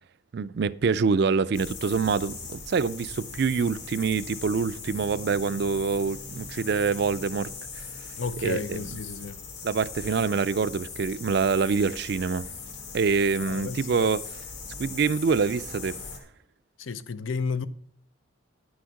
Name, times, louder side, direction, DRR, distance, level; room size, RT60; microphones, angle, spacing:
voice 1, 0.3-7.5 7.8-7.9 8.4-8.8 9.6-12.5 12.9-14.2 14.8-16.0, right 5 dB, 55° right, 0.4 m, -25 dB
sound 1, 1.5-16.2, left 5 dB, 65° left, 2.5 m, -40 dB
voice 2, 8.2-9.4 13.4-14.1 16.8-17.7, left 4 dB, 85° left, 0.6 m, -32 dB
10.5 x 6.4 x 5.8 m
head